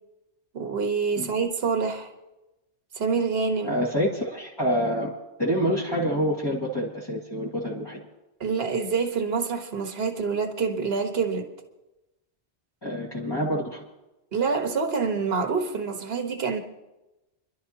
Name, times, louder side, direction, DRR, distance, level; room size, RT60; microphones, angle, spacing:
voice 1, 0.5-2.1 2.9-3.8 8.4-11.5 14.3-16.6, right 5 dB, 60° right, 1.5 m, -26 dB
voice 2, 3.6-5.1 5.4-8.0 12.8-13.8, equal, 20° left, 2.0 m, -27 dB
29.5 x 11.5 x 2.9 m
omnidirectional pair, 1.2 m